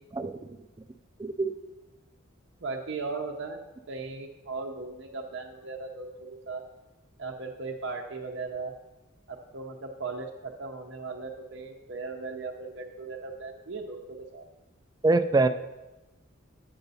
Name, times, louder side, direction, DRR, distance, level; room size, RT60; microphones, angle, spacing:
voice 1, 0.2-0.6 1.2-1.5 15.0-15.5, right 3 dB, 20° right, 9 dB, 0.3 m, -24 dB
voice 2, 2.6-6.6 7.2-8.7 9.3-14.5, right 4 dB, 60° right, 1 dB, 0.6 m, -37 dB
7.8 x 6.6 x 4.1 m, 1.1 s
head